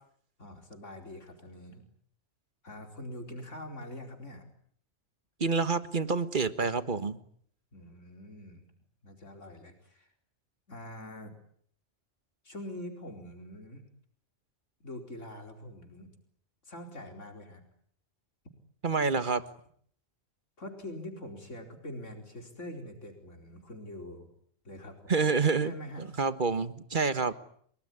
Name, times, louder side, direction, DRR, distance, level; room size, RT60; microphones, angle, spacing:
voice 1, 0.4-1.8 2.6-4.5 7.7-8.6 9.0-10.1 10.7-11.3 12.4-13.8 14.8-16.1 16.6-17.6 20.6-24.3 24.6-25.1 25.6-26.2, left 1 dB, 80° left, 4 dB, 4.9 m, -44 dB
voice 2, 5.4-7.2 18.8-19.4 25.1-25.7 26.2-27.3, right 4 dB, 40° right, 12 dB, 1.6 m, -27 dB
30.0 x 20.0 x 9.9 m, 0.65 s
omnidirectional pair, 1.3 m